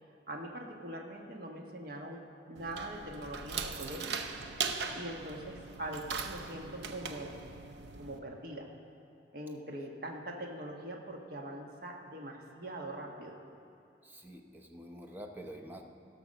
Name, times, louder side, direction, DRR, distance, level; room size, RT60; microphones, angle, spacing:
voice 1, 0.3-4.2 4.9-7.4 8.0-8.7 9.3-13.4, right 1 dB, 55° right, 1 dB, 1.2 m, -42 dB
sound 1, 2.6-8.2, right 5 dB, 80° right, 0.7 m, -40 dB
voice 2, 14.0-15.8, equal, 10° right, 2 dB, 0.7 m, -47 dB
16.0 x 6.0 x 6.3 m, 2.6 s
head